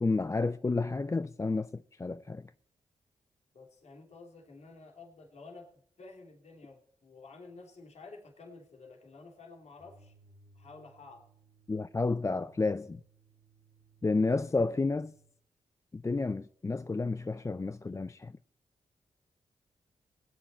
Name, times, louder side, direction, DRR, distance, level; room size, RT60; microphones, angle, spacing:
voice 1, 0.0-2.5 11.7-13.0 14.0-15.1 15.9-18.3, left 3 dB, 25° left, 0.5 m, -31 dB
voice 2, 3.5-5.7 6.0-10.1 10.5-11.2, left 3 dB, 65° left, 2.9 m, -51 dB
sound 1, 9.8-15.4, right 3 dB, 70° right, 2.4 m, -63 dB
18.0 x 9.0 x 4.3 m
supercardioid pair, 50°, 12 cm